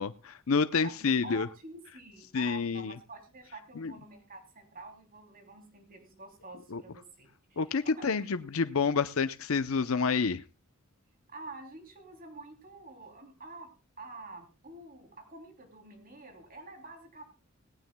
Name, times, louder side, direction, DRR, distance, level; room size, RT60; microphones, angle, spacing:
voice 1, 0.0-1.5 2.3-3.0 3.8-3.9 6.7-6.8 7.6-10.4, left 5 dB, 75° left, 12 dB, 0.6 m, -28 dB
voice 2, 0.8-8.2 11.3-13.7 14.0-17.2, right 3 dB, 40° right, 4 dB, 3.1 m, -48 dB
18.5 x 16.5 x 2.2 m, 0.31 s
head